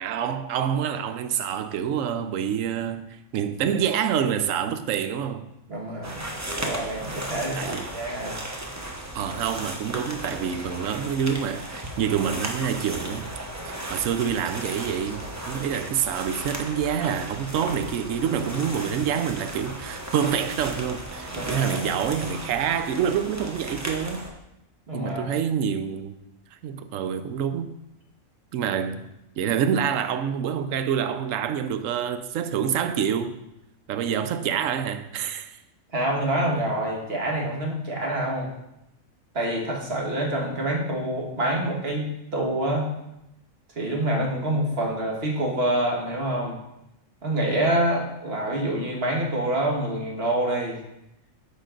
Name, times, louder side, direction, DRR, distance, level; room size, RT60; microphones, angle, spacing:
voice 1, 0.0-5.5 7.6-7.9 9.1-13.3 13.6-24.2 24.9-26.2 26.6-27.8 28.5-29.1 29.4-33.4 33.9-35.6, right 8 dB, 75° right, 1.0 m, -27 dB
voice 2, 5.7-8.4 21.3-21.9 24.9-25.4 35.9-38.5 39.3-42.9 43.8-46.6 47.2-50.8, right 1 dB, 50° right, 1.7 m, -27 dB
sound 1, 6.0-24.3, right 1 dB, 15° right, 0.7 m, -35 dB
9.3 x 5.1 x 3.8 m
omnidirectional pair, 1.4 m